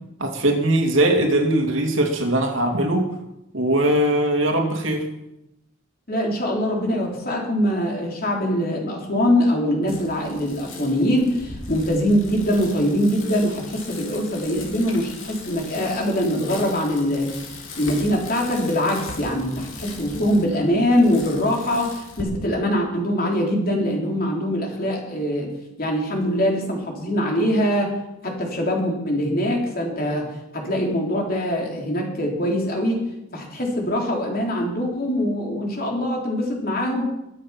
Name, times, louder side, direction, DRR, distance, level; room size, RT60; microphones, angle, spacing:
voice 1, 0.2-3.0 3.5-5.0, right 1 dB, 70° right, 2 dB, 2.7 m, -20 dB
voice 2, 6.1-25.5 25.8-27.9 28.2-30.3 30.5-33.0 33.3-37.0, equal, 50° left, 0 dB, 3.7 m, -23 dB
Bicycle, 9.9-22.2, left 3 dB, 75° left, 2.8 m, -39 dB
22.5 x 7.8 x 5.9 m, 0.88 s
head